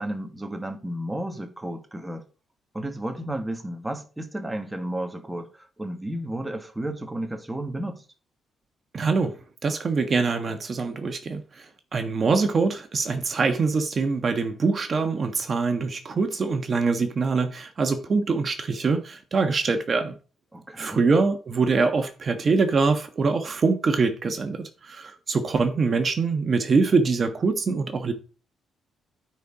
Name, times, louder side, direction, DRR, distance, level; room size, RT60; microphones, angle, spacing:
voice 1, 0.0-2.3 2.7-8.0 20.5-21.0, right 1 dB, 10° right, 1.4 m, -32 dB
voice 2, 8.9-9.3 9.6-11.4 11.9-20.2 20.8-28.1, right 4 dB, 40° right, 1.3 m, -24 dB
9.3 x 4.4 x 4.9 m
cardioid pair, 90°, 0 cm